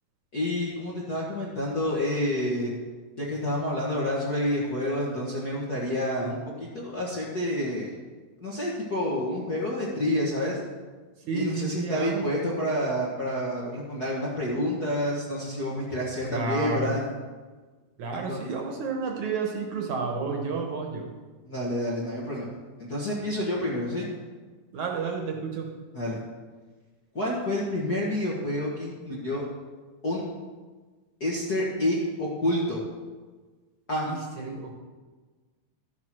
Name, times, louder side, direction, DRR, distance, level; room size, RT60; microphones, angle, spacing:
voice 1, 0.3-2.7 3.2-7.9 8.4-10.6 11.3-17.0 18.1-18.4 21.4-22.5 22.8-24.1 25.9-26.2 27.1-29.4 30.0-30.2 31.2-32.8 33.9-34.1, left 1 dB, 40° left, -5 dB, 1.4 m, -28 dB
voice 2, 5.9-6.3 11.3-12.3 16.3-16.9 18.0-21.1 24.7-25.7 34.1-34.7, right 5 dB, 65° right, 2 dB, 2.3 m, -31 dB
13.0 x 7.7 x 6.1 m, 1.4 s
omnidirectional pair, 4.1 m